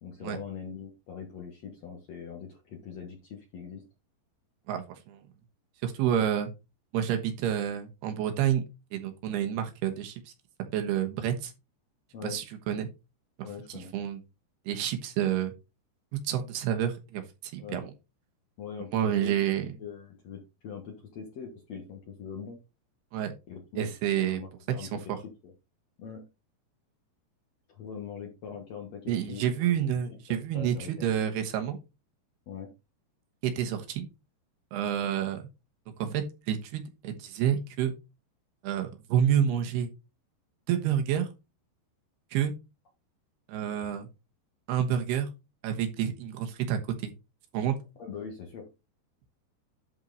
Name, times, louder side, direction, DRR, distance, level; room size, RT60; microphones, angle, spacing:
voice 1, 0.0-3.8 6.1-6.3 12.1-12.4 13.4-13.9 17.6-17.9 18.6-19.4 19.8-22.6 23.5-23.9 24.2-25.5 26.0-26.2 27.7-30.0 30.3-31.1 32.5-32.7 48.0-48.7, left 6 dB, 60° left, 2 dB, 1.9 m, -42 dB
voice 2, 4.7-5.2 5.8-6.5 6.9-8.6 8.9-10.2 10.7-11.5 12.2-12.9 13.7-14.2 14.7-15.5 16.1-17.9 18.9-19.7 23.1-23.3 23.8-24.4 24.8-24.9 29.1-31.8 33.4-34.1 34.7-35.4 36.0-37.9 38.6-39.9 40.7-41.3 42.3-42.5 43.5-44.1 44.7-45.3 45.6-47.1 47.5-47.8, right 9 dB, 80° right, 6 dB, 3.2 m, -29 dB
11.0 x 4.5 x 4.0 m, 0.26 s
omnidirectional pair, 4.8 m